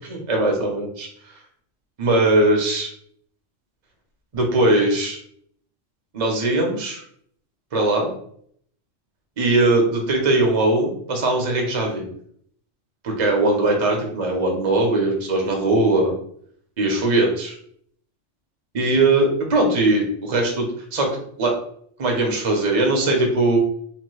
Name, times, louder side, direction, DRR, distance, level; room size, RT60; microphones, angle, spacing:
voice 1, 0.1-1.1 2.0-2.9 4.3-5.2 6.1-7.0 7.7-8.1 9.4-12.1 13.0-16.1 16.8-17.6 18.7-21.6 22.0-23.6, right 2 dB, 40° right, 1 dB, 0.6 m, -20 dB
2.9 x 2.2 x 3.1 m, 0.63 s
omnidirectional pair, 1.3 m